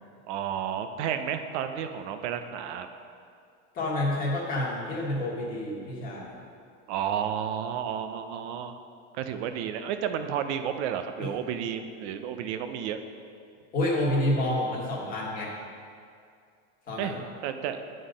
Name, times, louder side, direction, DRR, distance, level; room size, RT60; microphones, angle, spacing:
voice 1, 0.3-2.9 6.9-8.8 9.1-13.0 17.0-17.2 17.4-17.8, right 9 dB, 75° right, 8 dB, 0.7 m, -31 dB
voice 2, 3.7-6.4 11.2-11.3 13.7-15.5 16.9-17.2, left 1 dB, 25° left, -5 dB, 1.6 m, -29 dB
10.0 x 3.9 x 5.1 m, 2.3 s
supercardioid pair, 165°, 35 cm